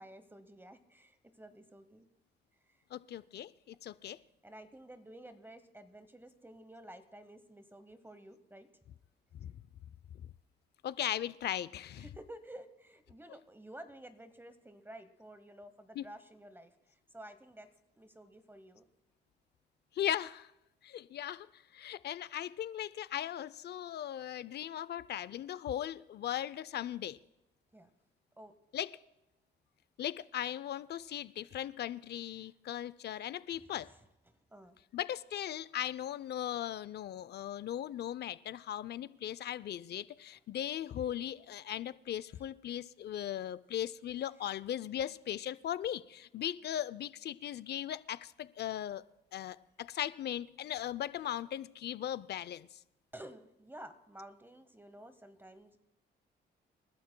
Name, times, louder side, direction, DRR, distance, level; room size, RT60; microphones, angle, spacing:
voice 1, 0.0-2.1 2.7-2.8 4.4-8.7 12.0-17.7 18.0-18.8 27.7-27.9 28.4-28.5 33.5-34.0 34.3-34.8 42.3-42.4 53.1-55.8, right 1 dB, 10° right, 1.0 m, -52 dB
voice 2, 2.9-4.2 9.3-9.5 10.1-10.3 10.8-12.1 15.9-16.0 19.9-20.5 20.8-27.2 28.7-28.9 30.0-33.9 34.9-49.0 49.3-52.7, left 11 dB, 55° left, 0.5 m, -38 dB
27.5 x 12.0 x 2.2 m
cardioid pair, 90°, 20 cm